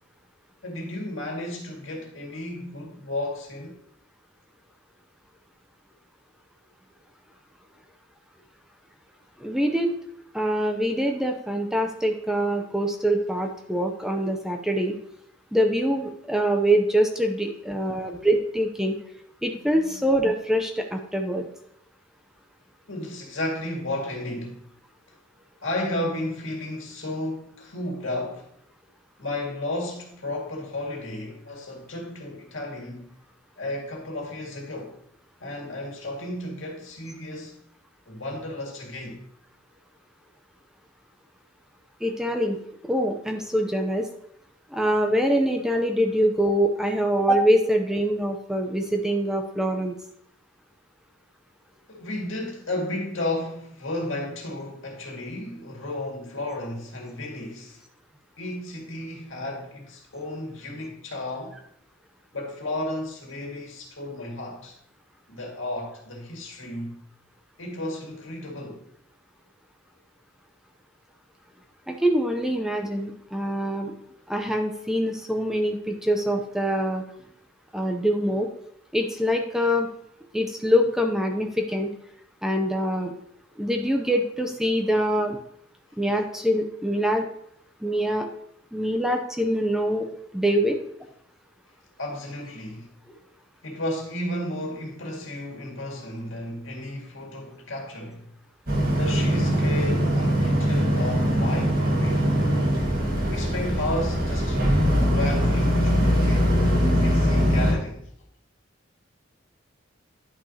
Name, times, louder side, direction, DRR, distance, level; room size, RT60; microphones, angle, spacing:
voice 1, 0.6-3.8 17.8-18.2 19.5-20.2 22.9-24.6 25.6-28.5 29.2-33.1 33.6-35.0 35.4-37.6 38.1-39.2 51.9-57.8 58.4-61.6 62.3-64.8 65.3-67.0 67.6-68.8 92.0-92.9 93.6-98.3 98.9-102.3 103.3-106.7 107.0-108.0, left 1 dB, 85° left, 1.9 m, -33 dB
voice 2, 9.4-9.9 10.3-15.0 15.5-19.0 19.4-21.5 42.0-42.6 42.8-44.1 44.7-49.9 71.9-73.9 74.3-77.0 77.7-78.5 78.9-79.9 80.3-81.9 82.4-83.1 83.6-85.4 86.0-87.2 87.8-88.3 88.7-90.1 90.3-90.7, equal, 5° right, 0.6 m, -24 dB
Boat Water vehicle, 98.7-107.7, equal, 50° right, 1.8 m, -22 dB
10.5 x 5.9 x 2.8 m
head